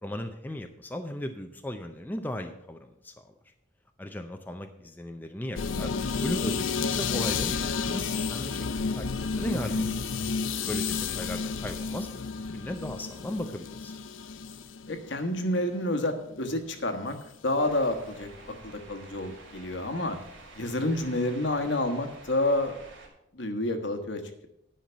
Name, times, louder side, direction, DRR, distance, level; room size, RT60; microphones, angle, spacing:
voice 1, 0.0-3.1 4.0-5.9 6.2-9.9 10.7-12.1 12.5-13.9, left 1 dB, 10° left, 5 dB, 0.5 m, -36 dB
sound 1, 5.6-16.6 16.9-17.3, left 5 dB, 80° left, 0.6 m, -31 dB
voice 2, 9.4-9.9 14.9-17.2 17.4-20.2 20.6-22.7 23.3-24.5, left 1 dB, 65° left, 6 dB, 1.3 m, -29 dB
sound 2, 17.6-23.1, right 2 dB, 80° right, 2.6 m, -49 dB
10.5 x 5.7 x 6.8 m, 0.80 s
head